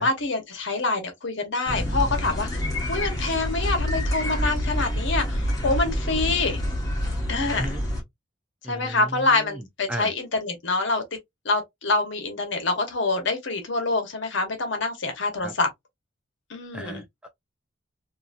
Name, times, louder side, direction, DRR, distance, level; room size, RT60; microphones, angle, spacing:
voice 1, 0.0-2.6 2.9-6.6 7.3-7.7 8.7-11.2 11.4-15.7 16.5-17.0, left 3 dB, 60° left, 1.0 m, -26 dB
sound 1, 1.7-8.0, left 1 dB, 15° left, 1.0 m, -27 dB
voice 2, 7.5-7.8 8.6-10.1 15.4-15.6 16.7-17.3, right 1 dB, 5° right, 0.3 m, -35 dB
2.7 x 2.7 x 2.5 m
head